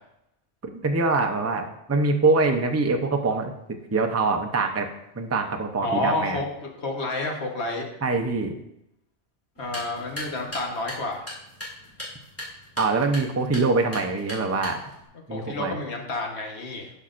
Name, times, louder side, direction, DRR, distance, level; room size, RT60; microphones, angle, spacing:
voice 1, 0.6-3.5 3.9-4.9 5.2-6.4 8.0-8.5 12.8-14.8 15.3-15.8, right 3 dB, 20° right, 4 dB, 0.5 m, -24 dB
voice 2, 5.8-7.9 9.6-11.3 15.3-16.9, left 2 dB, 60° left, 1 dB, 1.5 m, -29 dB
sound 1, 9.5-15.1, left 1 dB, 10° left, 2.6 m, -39 dB
12.5 x 5.9 x 2.5 m, 0.83 s
omnidirectional pair, 1.2 m